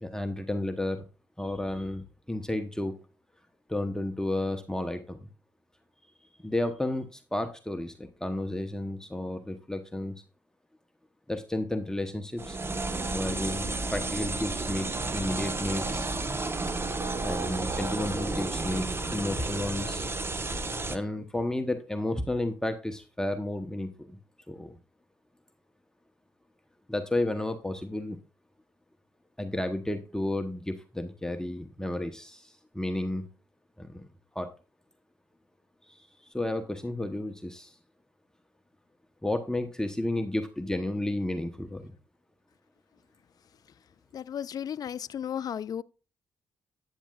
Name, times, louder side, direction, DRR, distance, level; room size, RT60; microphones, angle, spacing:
voice 1, 0.0-1.1 1.4-3.0 3.7-5.3 6.4-10.2 11.3-12.6 13.1-16.1 17.2-20.1 20.9-24.2 24.5-24.8 26.9-28.2 29.4-33.3 33.8-34.1 34.3-34.5 35.8-37.8 39.2-41.9, left 1 dB, 10° left, 0.9 m, -32 dB
sound 1, 12.4-21.0, right 3 dB, 30° right, 1.2 m, -32 dB
voice 2, 44.1-45.8, left 9 dB, 55° left, 0.4 m, -34 dB
10.0 x 9.4 x 2.4 m
supercardioid pair, 55°, 8 cm